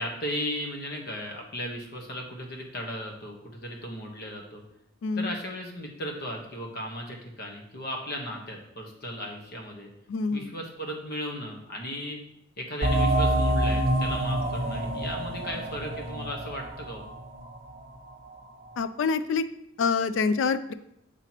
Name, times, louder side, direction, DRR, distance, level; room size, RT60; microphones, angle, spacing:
voice 1, 0.0-4.6 5.1-9.9 10.3-12.2 12.6-17.0, left 1 dB, 55° left, 1 dB, 1.2 m, -36 dB
voice 2, 5.0-5.4 10.1-10.5 18.8-19.4 19.8-20.7, left 4 dB, 70° left, 13 dB, 0.3 m, -26 dB
sound 1, 12.8-18.1, right 1 dB, 45° right, 1.1 m, -27 dB
6.8 x 5.8 x 2.9 m, 0.79 s
head